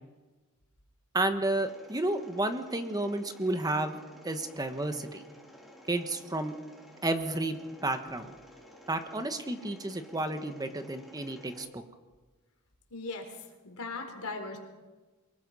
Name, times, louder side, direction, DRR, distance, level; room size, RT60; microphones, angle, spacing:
voice 1, 1.1-4.0 4.2-5.2 5.9-6.5 7.0-8.3 8.9-11.8, right 2 dB, 20° right, 8 dB, 1.3 m, -31 dB
Mechanisms, 1.5-11.7, equal, ahead, 3.5 m, -53 dB
voice 2, 12.9-14.6, left 3 dB, 80° left, 3 dB, 4.2 m, -39 dB
24.5 x 20.5 x 5.5 m, 1.3 s
head